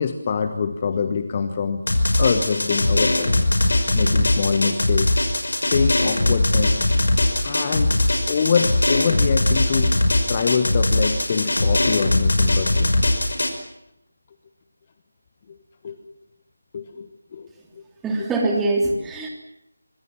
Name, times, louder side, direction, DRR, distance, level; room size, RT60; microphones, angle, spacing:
voice 1, 0.0-1.9 2.2-3.4 3.9-5.2 5.6-6.9 7.4-8.0 8.3-9.9 10.3-12.9 15.5-15.6 15.8-16.0 16.7-17.8 18.2-18.3, left 6 dB, 25° left, 9 dB, 1.3 m, -24 dB
Drum, 1.9-13.5, left 2 dB, 55° left, 5.5 m, -20 dB
voice 2, 18.0-19.3, right 2 dB, 5° right, 1 dB, 3.2 m, -23 dB
25.5 x 24.5 x 7.4 m, 0.82 s
figure-of-eight pair, 160°, 0 cm